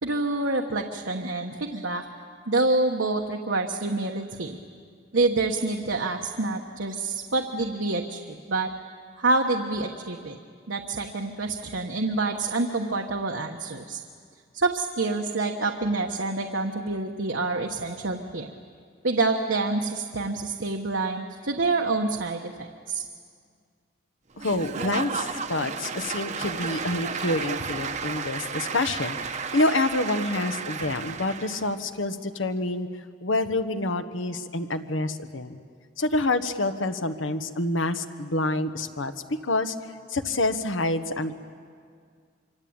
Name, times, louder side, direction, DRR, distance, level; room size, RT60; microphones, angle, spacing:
voice 1, 0.0-2.1 2.5-4.6 5.1-8.7 9.2-10.4 10.7-14.0 14.5-18.5 19.0-23.0, right 3 dB, 80° right, 2 dB, 1.3 m, -27 dB
voice 2, 24.4-32.9 33.2-35.6 36.0-39.1 39.4-39.7 40.1-41.3, left 2 dB, 90° left, 8 dB, 1.4 m, -27 dB
Applause / Crowd, 24.4-31.7, right 5 dB, 40° right, 0.9 m, -33 dB
25.5 x 24.5 x 8.9 m, 2.1 s
head